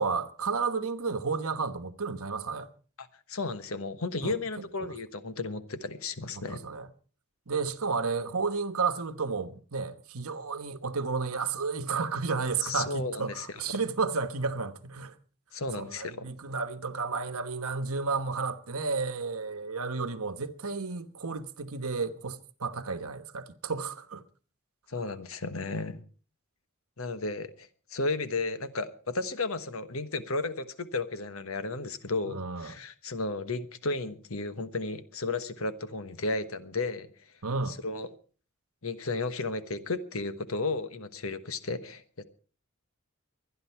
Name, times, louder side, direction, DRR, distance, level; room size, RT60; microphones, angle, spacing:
voice 1, 0.0-2.7 4.2-4.9 6.3-6.9 7.5-15.1 15.7-24.2 32.3-32.7 37.4-37.8, right 4 dB, 80° right, 1.2 m, -32 dB
voice 2, 3.0-6.6 12.6-13.8 15.5-16.2 24.9-26.0 27.0-37.1 37.7-38.1 38.8-42.2, left 3 dB, 70° left, 1.2 m, -34 dB
24.0 x 10.5 x 4.6 m
head